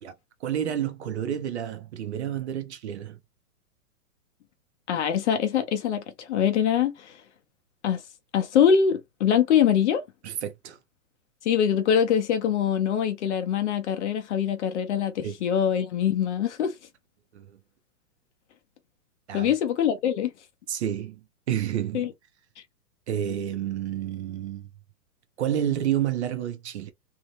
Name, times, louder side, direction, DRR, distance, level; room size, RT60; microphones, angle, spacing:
voice 1, 0.4-3.2 10.2-10.8 15.2-15.4 17.3-17.6 19.3-19.5 20.7-22.1 23.1-24.7 25.4-26.9, right 10 dB, 45° right, 0.5 m, -30 dB
voice 2, 4.9-7.1 7.8-8.0 8.3-10.0 11.5-16.7 19.3-20.3 21.9-22.1, left 8 dB, 50° left, 0.7 m, -23 dB
2.7 x 2.1 x 2.9 m
hypercardioid pair, 160°, 47 cm